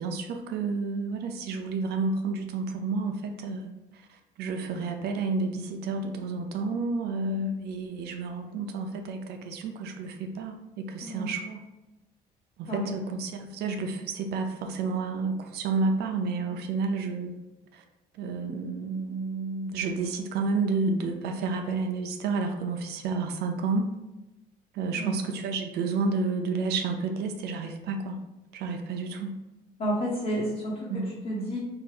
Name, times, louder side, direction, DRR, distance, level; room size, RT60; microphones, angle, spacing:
voice 1, 0.0-3.7 4.4-11.6 12.6-17.3 18.2-23.9 24.8-28.2 28.5-29.4 30.9-31.2, right 4 dB, 75° right, 4 dB, 0.6 m, -30 dB
voice 2, 29.8-31.6, right 1 dB, 45° left, -7 dB, 1.3 m, -31 dB
4.7 x 2.5 x 3.8 m, 1.0 s
cardioid pair, 110°, 17 cm